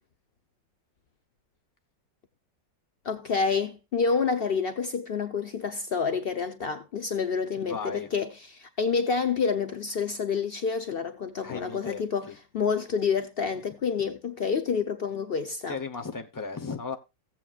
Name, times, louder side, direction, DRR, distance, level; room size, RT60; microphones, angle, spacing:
voice 1, 3.0-15.8, left 5 dB, 90° left, 0.5 m, -28 dB
voice 2, 7.7-8.1 11.4-12.3 15.7-17.0, left 5 dB, 20° left, 0.5 m, -36 dB
16.5 x 7.6 x 2.4 m
omnidirectional pair, 1.9 m